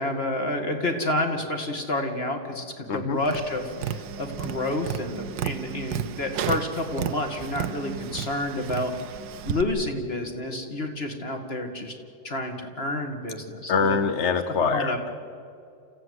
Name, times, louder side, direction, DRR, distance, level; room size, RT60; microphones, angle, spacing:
voice 1, 0.0-8.9 9.4-11.9 12.2-14.0 14.7-15.0, left 1 dB, 30° left, 5 dB, 2.4 m, -29 dB
voice 2, 2.9-3.2 13.7-15.1, left 5 dB, 55° left, 10 dB, 0.8 m, -24 dB
Tap, 3.2-9.6, right 9 dB, 70° right, 1.5 m, -33 dB
29.0 x 15.5 x 9.6 m, 2.5 s
omnidirectional pair, 2.1 m